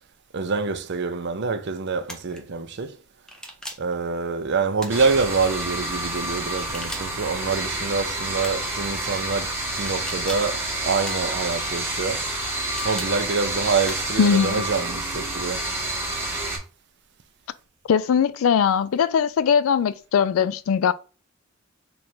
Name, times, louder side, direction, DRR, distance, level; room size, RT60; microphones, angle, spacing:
voice 1, 0.3-3.0 3.8-12.3 12.8-15.7, right 4 dB, 55° right, 0.5 m, -26 dB
sound 1, 2.0-2.4 3.3-3.9 4.8-5.4 6.5-7.3 8.4-8.8 9.9-10.6 11.0-11.6 12.5-13.1 13.8-14.2, equal, 5° left, 0.6 m, -39 dB
sound 2, 4.9-16.6, right 1 dB, 10° right, 0.9 m, -29 dB
voice 2, 14.2-14.7 17.9-20.9, left 7 dB, 85° left, 0.3 m, -20 dB
3.1 x 2.5 x 4.3 m
head